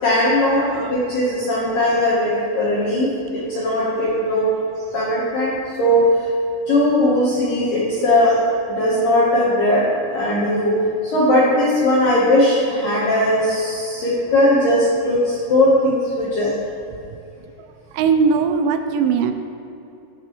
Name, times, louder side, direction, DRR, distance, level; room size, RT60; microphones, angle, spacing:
voice 1, 0.0-4.5 4.9-6.2 6.7-8.4 8.7-10.8 11.1-16.5, left 1 dB, 75° left, -7 dB, 2.0 m, -18 dB
voice 2, 17.9-19.3, right 5 dB, 85° right, 6 dB, 2.9 m, -19 dB
16.0 x 5.4 x 3.0 m, 2.8 s
omnidirectional pair, 5.5 m